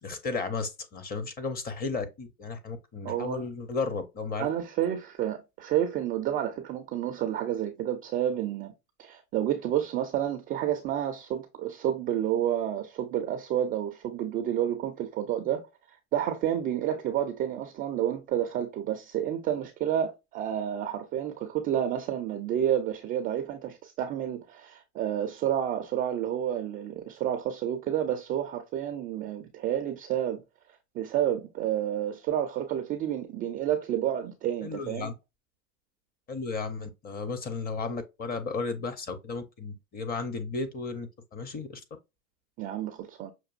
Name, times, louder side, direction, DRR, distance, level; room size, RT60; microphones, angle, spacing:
voice 1, 0.0-4.5 34.6-35.1 36.3-41.8, left 4 dB, 20° left, 0.7 m, -34 dB
voice 2, 3.0-3.5 4.4-8.7 9.0-15.7 16.1-30.4 30.9-35.1 42.6-43.3, right 10 dB, 25° right, 0.3 m, -30 dB
5.9 x 2.6 x 2.4 m
hypercardioid pair, 115°, 42 cm